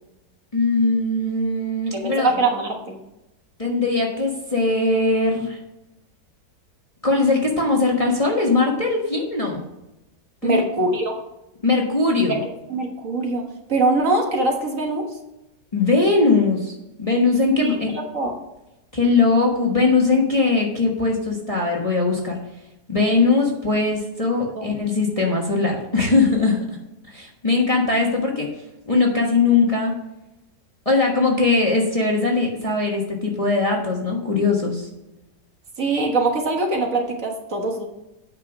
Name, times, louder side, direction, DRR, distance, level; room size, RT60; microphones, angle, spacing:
voice 1, 0.5-2.3 3.6-5.6 7.0-9.6 10.4-10.6 11.6-12.4 15.7-17.9 18.9-22.4 22.9-26.8 27.1-28.5 28.9-30.0 30.8-34.9, left 3 dB, 20° left, -1 dB, 1.2 m, -20 dB
voice 2, 1.9-3.0 10.4-11.1 12.4-13.4 13.7-15.0 17.6-18.3 24.6-24.7 35.8-37.9, right 2 dB, 50° right, 1 dB, 1.7 m, -23 dB
8.6 x 5.8 x 5.9 m, 0.92 s
omnidirectional pair, 1.8 m